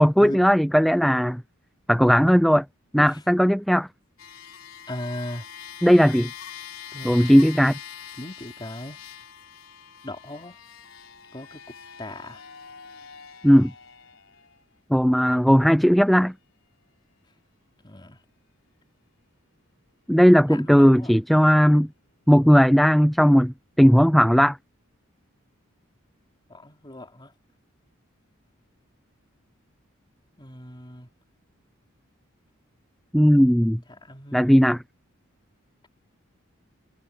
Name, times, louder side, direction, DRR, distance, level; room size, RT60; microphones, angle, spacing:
voice 1, 0.0-1.4 1.9-2.6 2.9-3.9 5.8-6.3 7.0-7.8 13.4-13.7 14.9-16.3 20.1-21.9 22.3-24.6 33.1-33.8 34.3-34.8, equal, ahead, 0.4 m, -17 dB
sound 1, 4.2-14.6 15.4-15.5, left 8 dB, 75° left, 4.0 m, -43 dB
voice 2, 4.9-5.4 6.9-7.3 8.2-9.0 10.0-10.6 11.3-11.6 12.0-12.4 17.8-18.2 20.5-21.1 26.5-27.3 30.4-31.1 33.9-34.6, left 1 dB, 20° left, 4.0 m, -38 dB
head